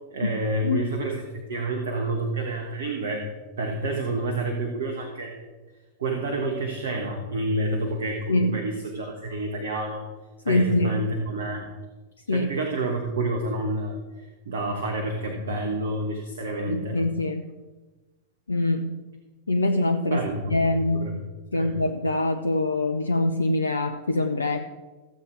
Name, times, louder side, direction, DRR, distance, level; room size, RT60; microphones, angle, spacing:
voice 1, 0.1-3.3 3.6-5.4 6.0-10.1 10.4-11.7 12.3-17.0 20.1-21.1 21.5-21.7, right 2 dB, 65° right, 2 dB, 1.5 m, -29 dB
voice 2, 8.3-8.6 10.5-11.0 12.3-12.5 16.7-17.4 18.5-19.0 19.5-20.2 20.5-21.2 21.5-24.7, left 2 dB, 75° left, 6 dB, 0.6 m, -24 dB
15.0 x 7.8 x 4.7 m, 1.2 s
figure-of-eight pair, 90°, 0 cm